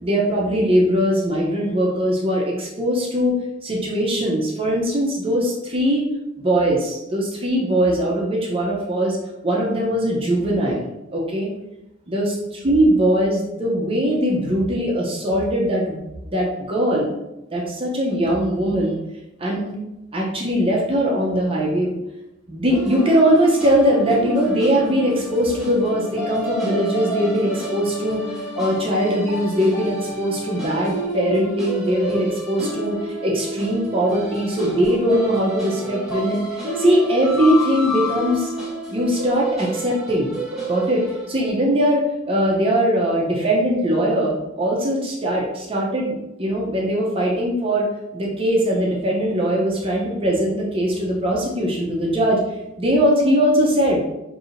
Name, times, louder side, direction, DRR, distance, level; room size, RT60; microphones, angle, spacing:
voice 1, 0.0-3.4 3.6-6.1 6.4-9.2 9.4-11.5 12.1-17.1 17.5-19.0 19.4-19.7 20.1-22.0 22.5-38.5 38.9-40.3 40.7-47.9 48.1-52.4 52.8-54.0, equal, 30° right, -3 dB, 0.6 m, -21 dB
sound 1, 22.7-41.5, right 1 dB, ahead, 1.3 m, -29 dB
4.7 x 2.7 x 2.5 m, 0.92 s
head